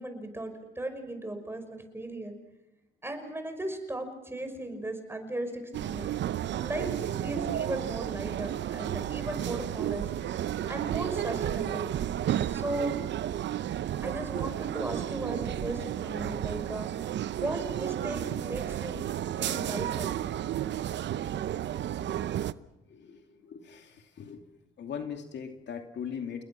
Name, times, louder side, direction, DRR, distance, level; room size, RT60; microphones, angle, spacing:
voice 1, 0.0-2.3 3.0-6.1 6.6-6.9 7.2-10.1 10.7-11.9 12.5-12.9 14.0-17.1 17.4-19.0 19.4-20.1, right 1 dB, 10° right, 6 dB, 5.9 m, -36 dB
sound 1, 5.7-22.5, right 11 dB, 65° right, 0.8 m, -32 dB
voice 2, 22.9-24.4 24.8-26.4, left 7 dB, 60° left, 5 dB, 2.6 m, -40 dB
29.5 x 20.5 x 6.0 m, 0.97 s
cardioid pair, 90°, 20 cm